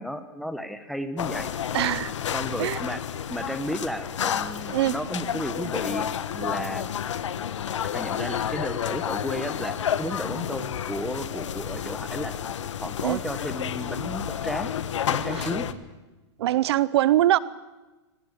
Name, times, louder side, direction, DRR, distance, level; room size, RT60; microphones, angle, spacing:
voice 1, 0.0-1.5 2.3-3.0 3.3-6.9 7.9-12.3 12.8-14.7 15.1-15.7, equal, ahead, 9 dB, 1.5 m, -33 dB
sound 1, 1.2-15.7, left 9 dB, 80° left, 1.4 m, -30 dB
voice 2, 1.7-2.1 2.6-2.8 4.7-4.9 13.0-13.2 15.4-15.5 16.4-17.4, right 14 dB, 60° right, 19 dB, 0.7 m, -22 dB
24.5 x 18.0 x 8.5 m, 1.2 s
hypercardioid pair, 135°, 15 cm